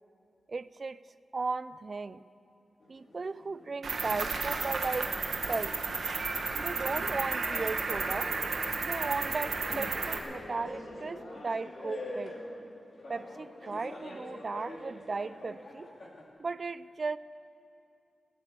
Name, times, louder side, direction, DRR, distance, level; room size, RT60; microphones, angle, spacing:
voice 1, 0.5-1.0 1.3-2.2 2.9-5.1 5.4-5.8 6.6-8.4 8.8-12.3 13.1-15.9 16.4-17.2, right 4 dB, 45° right, 16 dB, 0.4 m, -36 dB
sound 1, 2.8-16.2, left 1 dB, 55° left, 2.6 m, -45 dB
Cricket, 3.8-10.2, right 4 dB, 70° right, 1.5 m, -33 dB
16.0 x 11.0 x 8.1 m, 2.7 s
cardioid pair, 75°, 0 cm